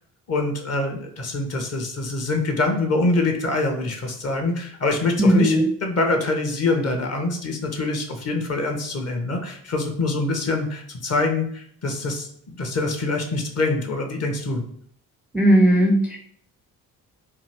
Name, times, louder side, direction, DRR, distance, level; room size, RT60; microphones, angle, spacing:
voice 1, 0.3-5.5 5.8-14.6, left 2 dB, 35° left, 3 dB, 0.7 m, -25 dB
voice 2, 5.2-5.7 15.3-16.2, equal, 5° right, -1 dB, 0.5 m, -16 dB
2.7 x 2.4 x 3.2 m, 0.63 s
figure-of-eight pair, 40°, 46 cm